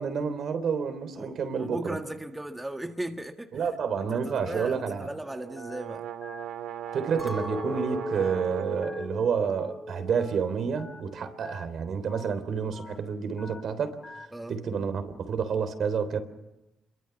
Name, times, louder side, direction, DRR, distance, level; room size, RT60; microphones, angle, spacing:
voice 1, 0.0-2.0 3.5-5.1 6.9-14.1 14.5-16.2, right 6 dB, 60° right, 3.4 m, -29 dB
voice 2, 1.1-3.6 4.1-6.1 14.3-14.6, right 1 dB, 10° right, 1.6 m, -37 dB
Telephone, 4.3-4.5 4.9-5.1 5.6-5.8 6.2-6.4 6.9-7.1 7.5-7.7 8.2-8.4 8.8-9.0 9.5-9.7 10.1-10.3 10.8-11.0 11.4-11.7 12.1-12.3 12.7-13.0 13.4-13.6 14.0-14.3, left 3 dB, 25° left, 3.7 m, -46 dB
sound 1, 5.1-9.0, right 10 dB, 80° right, 1.7 m, -39 dB
Chink clink, 7.2-11.6 11.9-12.5, left 1 dB, 5° left, 4.2 m, -38 dB
27.0 x 23.0 x 7.1 m
cardioid pair, 90°, 0 cm